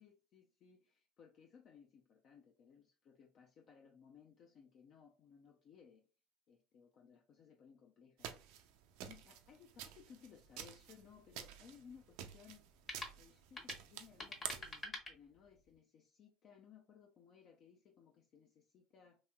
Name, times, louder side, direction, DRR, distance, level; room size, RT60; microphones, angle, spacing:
voice 1, 0.0-6.1 6.5-8.3 9.0-12.7 13.1-19.2, left 7 dB, 50° left, 0.5 m, -62 dB
sound 1, 8.2-14.8, right 9 dB, 70° right, 0.4 m, -50 dB
sound 2, 10.4-15.8, left 2 dB, 30° left, 1.1 m, -51 dB
3.0 x 2.7 x 2.3 m
hypercardioid pair, 70°, 0 cm